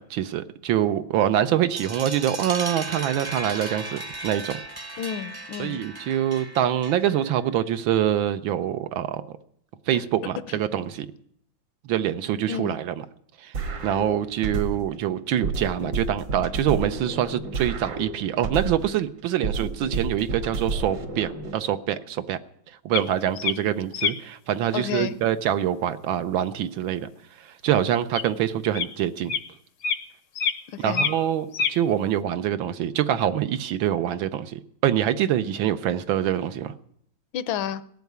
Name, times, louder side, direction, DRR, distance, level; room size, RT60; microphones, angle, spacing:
voice 1, 0.0-4.6 5.6-9.2 9.9-11.1 11.8-13.0 13.4-13.5 13.8-22.4 22.8-27.1 27.4-29.3 30.8-36.7, right 10 dB, 80° right, 1.6 m, -25 dB
sound 1, 1.8-7.3, right 2 dB, 20° right, 0.6 m, -36 dB
voice 2, 5.0-5.8 9.9-10.0 12.5-12.8 24.7-25.2 30.7-31.1 37.3-37.8, left 9 dB, 80° left, 1.5 m, -30 dB
sound 2, 13.5-15.0 15.4-19.0 19.4-21.5, right 3 dB, 65° right, 2.1 m, -31 dB
Two Buzzards, 22.9-23.0 23.4-23.5 23.9-24.1 28.1-28.2 28.7-28.9 29.3-29.4 29.8-30.0 30.4-30.6 30.8-31.3 31.5-31.7, left 6 dB, 60° left, 0.8 m, -25 dB
18.0 x 7.1 x 9.3 m
omnidirectional pair, 2.1 m